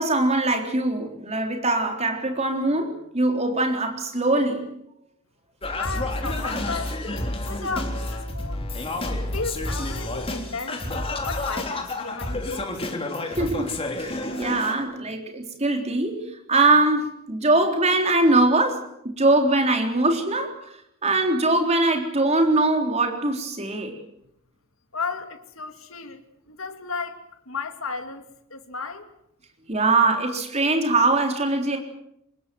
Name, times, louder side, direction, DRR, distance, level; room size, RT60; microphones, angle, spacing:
voice 1, 0.0-4.6 13.4-20.5 21.0-23.9 29.7-31.8, right 2 dB, 30° right, 3.8 m, -22 dB
Singing, 5.6-14.7, left 2 dB, 25° left, 3.3 m, -30 dB
voice 2, 5.8-8.6 9.3-12.8 24.9-26.2 26.5-27.2 27.5-29.1, left 4 dB, 70° left, 2.5 m, -34 dB
25.0 x 21.0 x 7.9 m
head